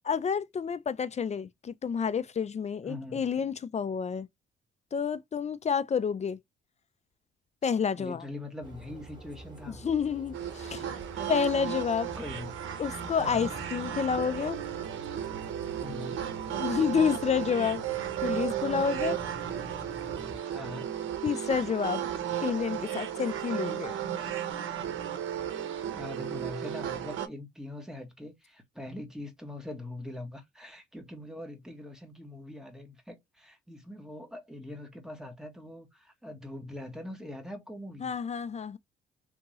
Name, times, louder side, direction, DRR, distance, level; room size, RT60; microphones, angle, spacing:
voice 1, 0.1-4.3 4.9-6.4 7.6-8.2 9.7-10.8 11.3-12.1 12.8-14.6 16.5-17.8 18.2-19.2 21.2-22.0 22.4-23.9 38.0-38.8, left 6 dB, 35° left, 0.5 m, -29 dB
voice 2, 2.9-3.2 7.9-9.8 10.8-11.3 12.2-12.5 13.1-13.5 15.8-16.2 20.5-20.9 25.9-38.1, left 1 dB, 5° right, 1.6 m, -42 dB
sound 1, 8.6-20.4, right 3 dB, 20° right, 2.4 m, -46 dB
sound 2, 10.3-27.3, right 10 dB, 80° right, 1.0 m, -34 dB
3.5 x 2.9 x 3.0 m
cardioid pair, 90°, 20 cm